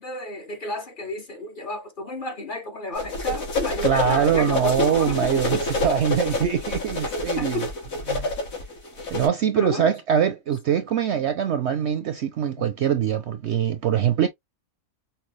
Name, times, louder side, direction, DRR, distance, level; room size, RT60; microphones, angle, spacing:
voice 1, 0.0-5.6 7.0-7.7 9.6-9.9 12.6-12.7 14.2-14.3, left 2 dB, 45° left, 0.8 m, -33 dB
sound 1, 3.0-9.3, left 2 dB, 65° left, 2.2 m, -27 dB
voice 2, 3.8-7.7 8.1-8.3 9.1-14.3, right 8 dB, 65° right, 0.7 m, -23 dB
5.9 x 2.2 x 3.1 m
omnidirectional pair, 1.5 m